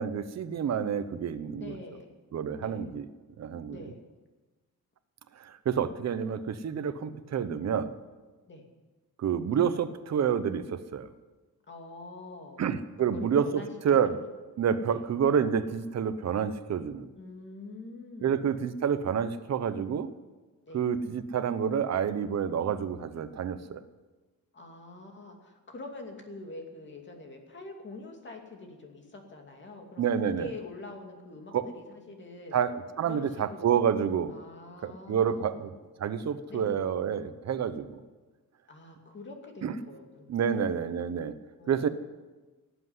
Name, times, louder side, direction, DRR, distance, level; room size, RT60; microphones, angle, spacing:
voice 1, 0.0-1.8 2.3-3.0 3.4-3.8 5.4-7.9 9.2-11.1 12.6-14.2 14.6-17.1 18.2-20.1 20.7-23.8 30.0-30.5 31.5-31.6 32.5-34.3 34.8-35.7 36.0-38.0 39.6-39.7 40.3-41.3 41.7-41.9, right 7 dB, 50° right, 12 dB, 0.9 m, -28 dB
voice 2, 1.6-2.1 2.6-2.8 3.7-4.0 8.5-8.7 11.7-12.6 13.0-14.3 14.9-15.1 17.2-18.4 20.6-20.9 24.5-32.6 33.0-33.8 34.3-35.7 36.5-36.8 38.7-40.8 41.6-41.9, left 2 dB, 30° left, 2 dB, 2.5 m, -45 dB
18.0 x 8.0 x 9.6 m, 1.2 s
wide cardioid pair, 175°, 35 cm